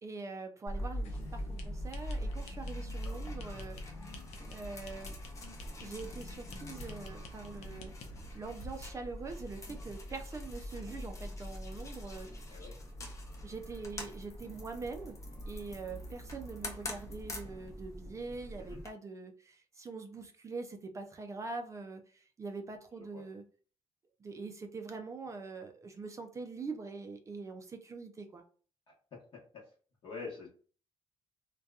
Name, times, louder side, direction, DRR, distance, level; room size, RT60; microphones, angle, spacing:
voice 1, 0.0-3.8 4.5-5.2 5.8-7.9 8.3-12.3 13.4-15.2 15.5-23.4 24.2-28.4, right 4 dB, 30° right, 5 dB, 0.4 m, -43 dB
sound 1, 0.7-18.9, equal, 30° left, 0.6 m, -43 dB
sound 2, 1.0-8.9, left 2 dB, 80° left, 0.6 m, -50 dB
voice 2, 30.0-30.5, left 4 dB, 50° left, -3 dB, 0.9 m, -44 dB
2.7 x 2.2 x 2.3 m, 0.41 s
cardioid pair, 120°, 11 cm